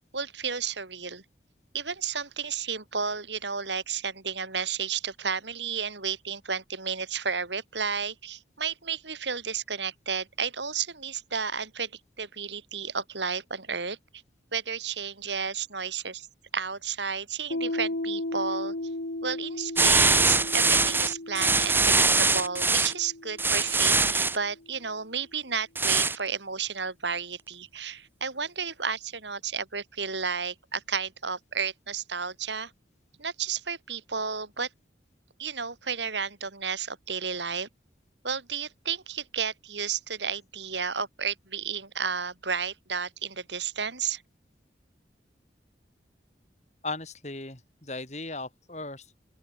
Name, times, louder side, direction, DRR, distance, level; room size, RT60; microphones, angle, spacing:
voice 1, 0.1-1.2 1.7-11.9 12.2-14.0 14.5-16.3 16.5-18.7 19.2-32.7 33.2-34.7 35.4-37.7 38.2-44.2, right 6 dB, 80° right, 5.2 m, -32 dB
Piano, 17.5-24.8, left 1 dB, 80° left, 2.0 m, -36 dB
sound 1, 19.8-22.9 23.4-24.4 25.7-26.2, right 3 dB, 10° right, 1.6 m, -22 dB
voice 2, 46.8-49.2, left 3 dB, 40° left, 4.5 m, -37 dB
open air
head